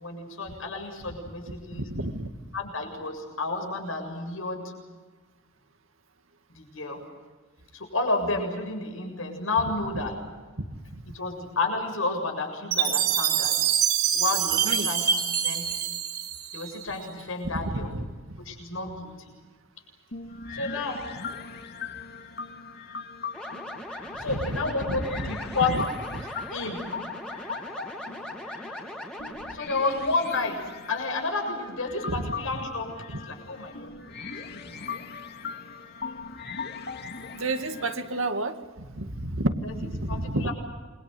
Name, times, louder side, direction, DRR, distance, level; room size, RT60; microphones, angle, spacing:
voice 1, 0.0-1.8 2.5-4.6 6.5-7.0 7.7-10.1 11.1-13.5 14.1-15.1 15.4-15.7 16.5-17.9 18.5-19.1 20.5-21.1 24.2-25.7 26.5-26.8 29.5-30.6 30.9-33.9 34.5-34.7 39.6-39.7 40.1-40.5, left 3 dB, 75° left, 3 dB, 7.4 m, -30 dB
voice 2, 1.5-2.3 10.7-11.0 14.6-14.9 17.5-18.4 24.1-24.6 24.9-25.3 25.7-25.8 26.1-26.2 32.1-32.3 37.3-40.5, right 1 dB, 75° right, 7 dB, 2.3 m, -31 dB
Chime, 12.7-17.0, right 9 dB, 55° right, 3.6 m, -25 dB
sound 1, 20.1-38.3, left 5 dB, 55° left, 2.2 m, -39 dB
sound 2, 23.3-29.6, left 1 dB, 5° left, 3.2 m, -39 dB
28.0 x 24.0 x 8.0 m, 1.3 s
head